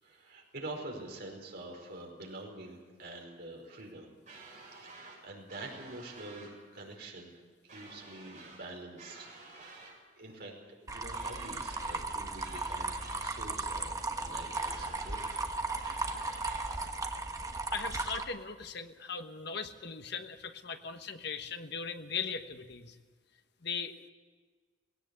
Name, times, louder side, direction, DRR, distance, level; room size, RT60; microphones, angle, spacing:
voice 1, 0.0-4.1 4.6-7.4 7.7-9.3 9.7-10.5 10.9-15.2, right 2 dB, 60° right, 1 dB, 4.9 m, -46 dB
sound 1, 4.3-5.2 5.5-6.5 7.7-8.6 9.0-9.9 11.1-12.0 12.4-13.4 14.5-15.5 15.8-16.8, right 3 dB, 40° right, 7.6 m, -51 dB
sound 2, 10.9-18.2, right 3 dB, 20° right, 1.2 m, -36 dB
voice 2, 17.7-22.9 23.6-24.1, left 6 dB, 60° left, 7 dB, 1.3 m, -39 dB
18.5 x 17.5 x 8.3 m, 1.5 s
head